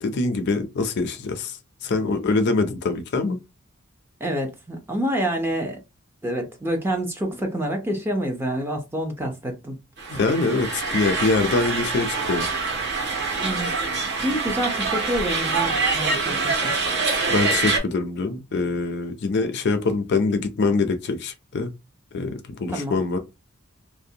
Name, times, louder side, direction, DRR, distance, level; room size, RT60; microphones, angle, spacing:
voice 1, 0.0-1.6 1.8-3.4 10.1-12.4 17.3-21.7 22.1-23.2, left 3 dB, 55° left, 0.4 m, -24 dB
voice 2, 4.2-5.8 6.2-9.8 13.4-13.7 14.2-16.7 22.7-23.0, equal, 10° right, 0.6 m, -27 dB
sound 1, 10.0-17.8, right 4 dB, 55° right, 0.8 m, -25 dB
2.5 x 2.1 x 2.7 m
head